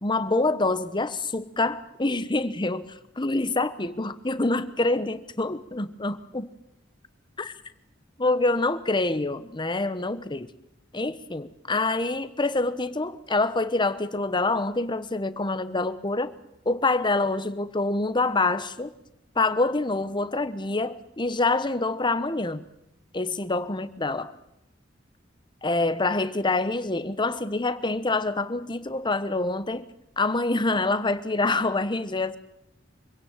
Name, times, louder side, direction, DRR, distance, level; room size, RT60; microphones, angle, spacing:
voice 1, 0.0-6.5 7.4-7.5 8.2-10.5 10.9-16.3 16.6-18.9 19.3-22.6 23.1-24.3 25.6-29.9 30.2-32.4, left 2 dB, 25° left, 13 dB, 1.1 m, -26 dB
25.0 x 17.0 x 8.9 m, 0.83 s
head